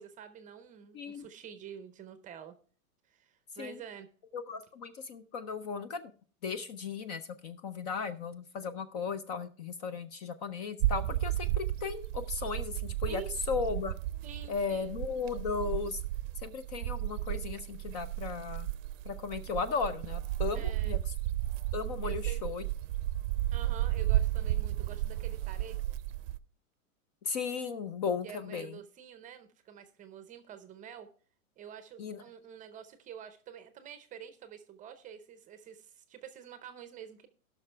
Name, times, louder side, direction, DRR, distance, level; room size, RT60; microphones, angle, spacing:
voice 1, 0.0-2.6 3.1-4.1 13.1-13.3 14.2-14.9 20.5-21.0 22.0-22.5 23.5-25.8 28.2-31.1 31.6-37.3, right 8 dB, 20° right, 11 dB, 0.6 m, -48 dB
voice 2, 0.9-1.3 3.6-3.8 4.3-6.1 6.4-13.2 13.5-14.0 14.5-16.0 16.4-18.7 19.1-21.0 21.7-22.6 27.3-28.7 32.0-32.2, left 5 dB, 30° left, 13 dB, 0.4 m, -36 dB
sound 1, 10.8-26.4, right 14 dB, 60° right, 0.6 m, -33 dB
17.5 x 5.9 x 3.3 m, 0.40 s
hypercardioid pair, 135°, 43 cm